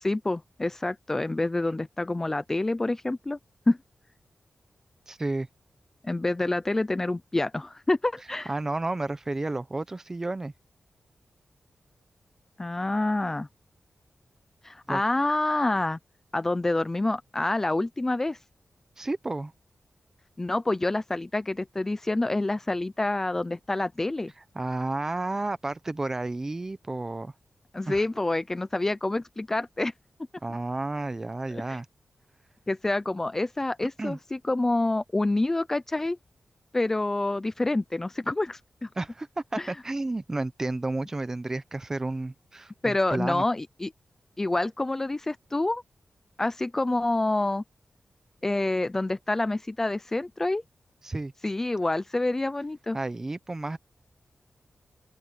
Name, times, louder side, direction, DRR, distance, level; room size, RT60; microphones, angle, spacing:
voice 1, 0.0-3.4 3.7-3.8 6.0-8.5 12.6-13.5 14.6-16.0 16.3-18.4 20.4-24.3 27.7-29.9 31.5-31.8 32.7-36.2 36.7-38.9 39.6-39.7 42.8-43.9 44.4-45.8 46.4-47.6 48.4-50.6 51.4-53.0, left 2 dB, 20° left, 0.5 m, -27 dB
voice 2, 5.1-5.5 8.5-10.5 14.9-15.0 19.0-19.5 24.5-27.3 27.9-28.0 30.4-31.9 34.0-34.2 38.9-43.4 51.0-51.3 52.9-53.8, right 2 dB, 20° right, 0.9 m, -31 dB
open air
wide cardioid pair, 150°, 2 cm